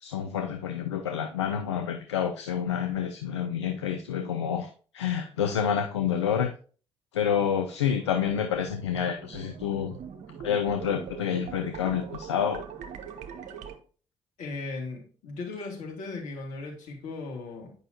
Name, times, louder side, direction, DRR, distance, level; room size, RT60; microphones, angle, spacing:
voice 1, 0.0-6.5 7.1-10.0 10.4-12.7, left 8 dB, 85° left, 6 dB, 0.4 m, -28 dB
sound 1, 7.6-13.8, right 7 dB, 60° right, 0.8 m, -42 dB
voice 2, 14.4-17.7, left 3 dB, 60° left, -1 dB, 2.1 m, -37 dB
9.2 x 5.4 x 2.8 m, 0.41 s
figure-of-eight pair, 40°, 14 cm